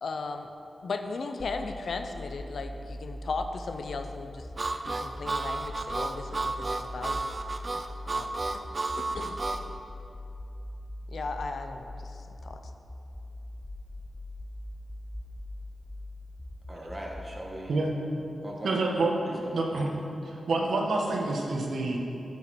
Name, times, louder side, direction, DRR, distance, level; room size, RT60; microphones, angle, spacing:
voice 1, 0.0-0.5 0.8-4.4 4.8-7.2 8.1-8.3 9.0-9.4 11.1-12.6, left 3 dB, 70° left, 6 dB, 0.6 m, -36 dB
sound 1, 1.4-17.4, left 1 dB, 20° left, 0.4 m, -42 dB
Harmonica, 4.6-9.6, right 3 dB, 35° right, 0.5 m, -32 dB
voice 2, 16.7-17.9 18.4-19.5, equal, 15° right, -2 dB, 1.6 m, -40 dB
voice 3, 18.6-19.1 19.5-19.9 20.2-22.0, right 2 dB, 80° right, 0 dB, 1.4 m, -27 dB
13.5 x 7.0 x 4.3 m, 2.8 s
wide cardioid pair, 115°, 0 cm